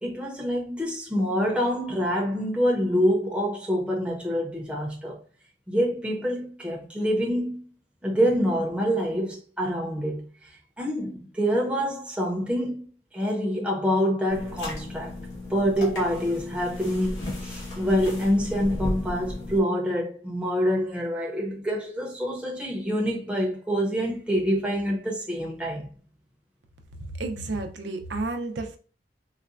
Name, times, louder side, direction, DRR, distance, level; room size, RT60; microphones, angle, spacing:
voice 1, 0.0-5.2 5.7-7.6 8.0-10.5 10.8-12.9 13.1-15.2 15.5-25.9, equal, 5° right, 0.7 m, -26 dB
sound 1, 14.3-19.6, left 1 dB, 90° left, 1.3 m, -35 dB
voice 2, 26.9-28.8, right 2 dB, 80° right, 0.5 m, -32 dB
4.0 x 2.2 x 2.4 m
head